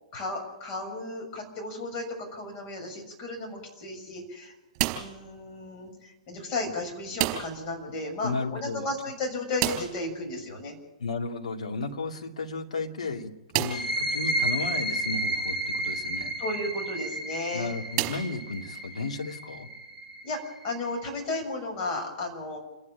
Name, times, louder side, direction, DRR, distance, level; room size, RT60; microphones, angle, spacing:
voice 1, 0.1-4.5 4.9-10.7 16.4-17.7 20.2-22.6, left 2 dB, 35° left, 1 dB, 6.8 m, -34 dB
sound 1, 4.7-5.3 7.1-7.7 8.0-8.1 8.4-8.5 9.6-10.1 11.9-12.0 12.6-12.7 13.5-14.0 14.7-14.8 16.8-17.1 17.9-18.8, right 15 dB, 40° right, 3.9 m, -30 dB
voice 2, 8.2-8.9 11.0-16.3 17.5-19.7, left 3 dB, 70° left, 3 dB, 2.4 m, -34 dB
sound 2, 13.6-21.0, right 1 dB, 85° left, 4.8 m, -32 dB
28.5 x 11.0 x 8.7 m, 1.0 s
figure-of-eight pair, 110°, 4 cm